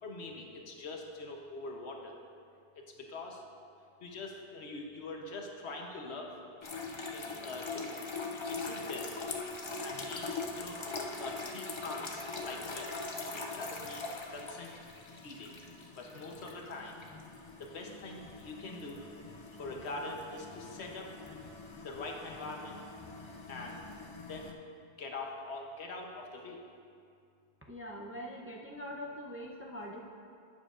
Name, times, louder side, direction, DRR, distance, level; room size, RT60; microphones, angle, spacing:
voice 1, 0.0-2.2 2.7-3.4 4.0-6.3 7.1-7.9 8.5-9.1 9.8-10.8 11.2-13.2 13.6-14.7 15.2-15.6 15.9-17.0 17.6-19.1 19.6-21.1 21.8-22.8 23.5-23.8 24.3-24.6 25.0-26.6, left 3 dB, 85° left, 1 dB, 1.2 m, -43 dB
sound 1, 6.6-24.5, left 3 dB, 35° left, 0.5 m, -42 dB
voice 2, 27.7-30.0, equal, 15° right, -2 dB, 0.5 m, -43 dB
11.5 x 8.8 x 2.5 m, 2.3 s
omnidirectional pair, 1.1 m